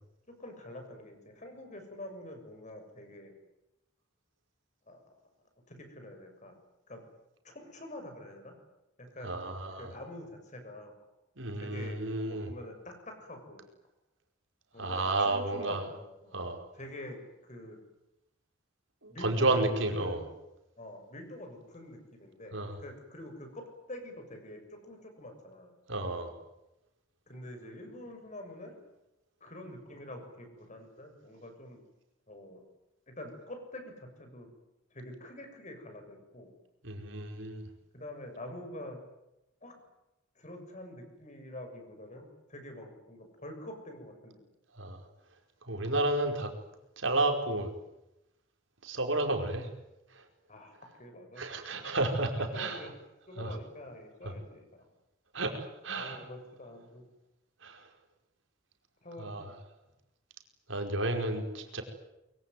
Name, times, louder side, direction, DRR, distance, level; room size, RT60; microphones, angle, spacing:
voice 1, 0.4-3.3 4.9-5.0 5.7-6.5 6.9-7.0 7.4-8.5 9.0-9.4 9.8-10.9 11.5-13.6 14.7-16.4 16.7-17.8 19.1-19.6 19.9-20.2 20.8-25.7 27.3-28.8 29.4-31.8 32.3-32.6 33.1-34.5 34.9-36.5 37.9-39.0 39.6-39.8 40.3-44.4 50.5-51.8 52.5-52.9 53.3-54.6 56.0-57.0 59.0-59.5, left 1 dB, 40° left, 5 dB, 6.9 m, -46 dB
voice 2, 9.2-9.9 11.4-12.5 14.8-15.8 16.3-16.6 19.0-20.2 22.5-22.8 25.9-26.3 36.8-37.6 44.8-45.0 45.7-46.5 47.0-47.7 48.8-49.7 50.1-50.2 51.3-52.9 53.4-53.6 55.3-56.2 57.6-57.9 59.2-59.5 60.7-61.8, right 2 dB, 80° right, 4 dB, 4.9 m, -31 dB
24.5 x 23.0 x 9.4 m, 0.91 s
head